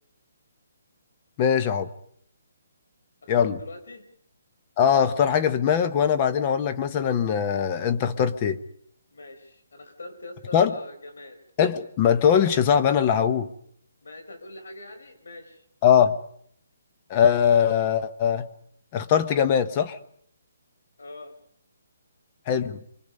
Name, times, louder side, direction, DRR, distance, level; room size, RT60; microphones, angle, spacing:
voice 1, 1.4-1.9 3.3-3.6 4.8-8.6 10.5-10.7 11.6-13.5 15.8-16.2 17.1-18.5 18.9-20.0 22.5-22.8, left 8 dB, 20° left, 11 dB, 0.9 m, -21 dB
voice 2, 3.2-4.1 9.1-11.4 14.0-15.6 21.0-21.3, left 2 dB, 85° left, 8 dB, 5.0 m, -42 dB
26.0 x 24.5 x 5.4 m, 0.67 s
hypercardioid pair, 170°, 0 cm